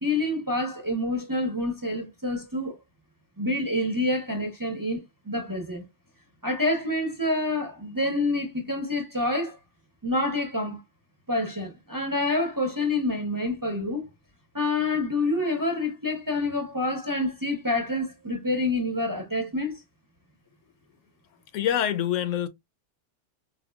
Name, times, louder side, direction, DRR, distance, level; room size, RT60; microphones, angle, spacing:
voice 1, 0.0-2.8 3.4-5.8 6.4-9.6 10.0-10.8 11.3-14.1 14.5-19.8, left 2 dB, 20° right, 0.6 m, -27 dB
voice 2, 21.5-22.5, left 10 dB, 85° left, 0.9 m, -25 dB
4.3 x 2.2 x 2.2 m
omnidirectional pair, 1.2 m